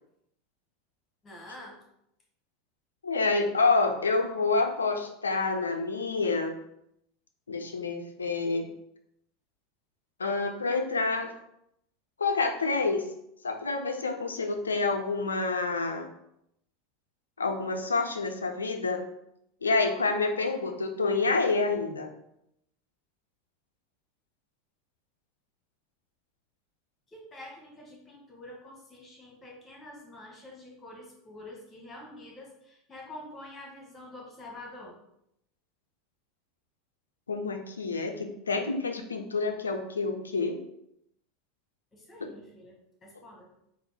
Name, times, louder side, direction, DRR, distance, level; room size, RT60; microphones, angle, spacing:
voice 1, 1.2-1.8 27.1-35.0 41.9-43.5, left 1 dB, 20° left, -1 dB, 1.5 m, -47 dB
voice 2, 3.0-6.6 7.5-8.7 10.2-11.3 12.2-13.0 13.4-16.1 17.4-19.0 19.6-22.1 37.3-40.6, left 3 dB, 80° left, 5 dB, 0.5 m, -28 dB
4.2 x 2.2 x 4.2 m, 0.77 s
figure-of-eight pair, 80°, 0 cm